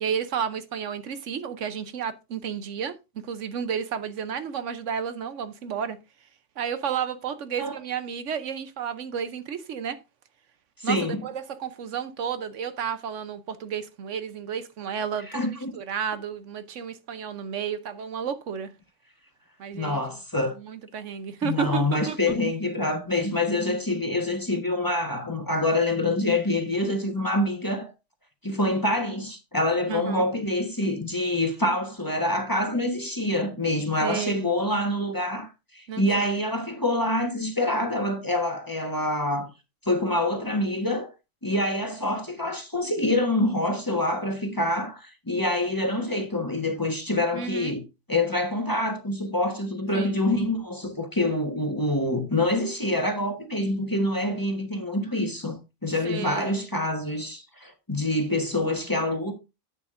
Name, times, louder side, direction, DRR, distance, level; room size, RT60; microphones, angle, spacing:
voice 1, 0.0-2.9 3.2-6.0 6.6-10.0 10.8-18.7 19.6-20.0 20.6-22.2 29.9-30.3 34.0-34.5 35.9-36.3 47.3-47.7 49.9-50.1 56.0-56.6, right 7 dB, 70° right, 1.1 m, -32 dB
voice 2, 10.8-11.2 15.3-15.7 19.7-20.6 21.4-27.9 28.4-39.5 39.8-41.1 41.4-47.8 48.1-59.3, left 1 dB, 15° left, 1.2 m, -26 dB
10.5 x 8.3 x 2.5 m
omnidirectional pair, 1.3 m